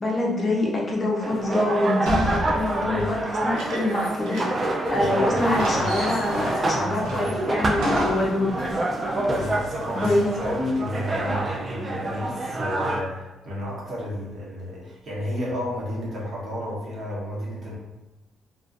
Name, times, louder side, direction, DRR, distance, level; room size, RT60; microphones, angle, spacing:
voice 1, 0.0-8.6 9.9-10.4, left 2 dB, 35° left, -2 dB, 0.6 m, -25 dB
sound 1, 1.2-13.0, right 2 dB, 30° right, 0.4 m, -27 dB
sound 2, 2.1-4.8 5.0-5.1 5.4-6.5 7.1-8.4, right 1 dB, 80° right, 0.6 m, -32 dB
voice 2, 2.8-3.1 4.9-7.3 9.3-17.8, left 1 dB, 55° right, -6 dB, 0.9 m, -32 dB
sound 3, 4.8-11.5, left 2 dB, 80° left, 0.4 m, -41 dB
2.4 x 2.2 x 2.4 m, 1.1 s
cardioid pair, 90°, 0 cm